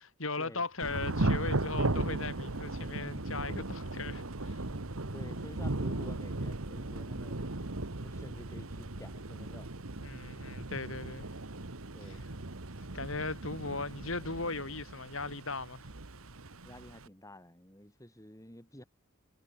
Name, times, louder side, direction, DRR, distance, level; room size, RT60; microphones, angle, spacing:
voice 1, 0.0-4.6 10.0-11.3 12.9-15.8, left 3 dB, 70° left, 5.2 m, -38 dB
Thunder / Rain, 0.8-17.1, right 2 dB, 75° right, 1.7 m, -37 dB
voice 2, 5.0-9.7 11.9-12.3 16.6-18.8, left 1 dB, 15° left, 7.6 m, -51 dB
head